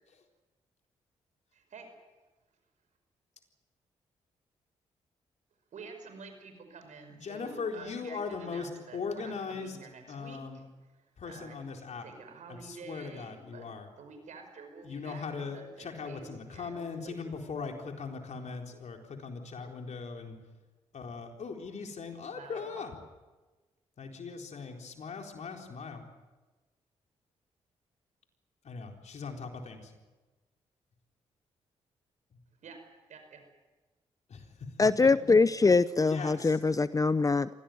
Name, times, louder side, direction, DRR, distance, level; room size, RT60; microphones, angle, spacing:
voice 1, 1.5-1.9 5.7-10.6 11.3-13.7 14.0-16.2 16.5-17.2 22.3-22.8 32.6-32.8 33.1-33.4, right 4 dB, 70° right, 6 dB, 5.5 m, -49 dB
voice 2, 7.1-9.8 10.1-10.6 11.2-12.0 12.5-13.9 14.8-20.4 20.9-22.9 24.0-26.0 28.6-29.9 34.3-34.5 35.0-35.1 36.0-36.6, left 5 dB, 60° left, 3 dB, 4.1 m, -39 dB
voice 3, 34.8-37.5, left 4 dB, 25° left, 16 dB, 0.7 m, -23 dB
24.0 x 17.5 x 9.3 m, 1.2 s
supercardioid pair, 50°, 13 cm